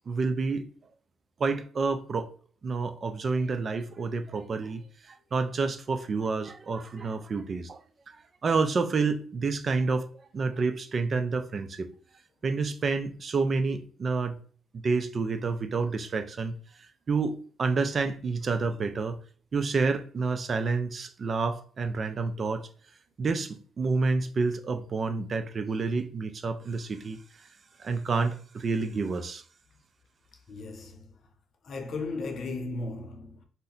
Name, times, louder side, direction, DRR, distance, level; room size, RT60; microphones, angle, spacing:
voice 1, 0.1-0.7 1.4-2.3 2.6-7.8 8.4-11.9 12.4-14.4 14.7-16.6 17.1-19.2 19.5-22.7 23.2-27.2 27.8-29.4, right 4 dB, 45° right, 0.4 m, -29 dB
voice 2, 30.5-31.2 31.6-33.4, left 3 dB, 60° left, 0.7 m, -36 dB
2.6 x 2.1 x 3.8 m
cardioid pair, 90°, 0 cm